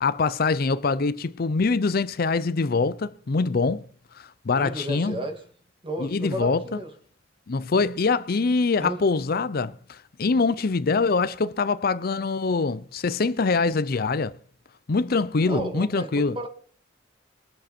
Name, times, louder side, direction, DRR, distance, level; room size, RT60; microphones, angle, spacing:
voice 1, 0.0-3.8 4.2-5.2 6.0-6.6 7.5-14.3 14.9-16.4, left 4 dB, 50° left, 0.5 m, -24 dB
voice 2, 4.5-5.4 5.8-6.9 8.8-9.0 15.5-16.5, right 1 dB, 25° right, 2.3 m, -32 dB
22.5 x 7.7 x 4.4 m
head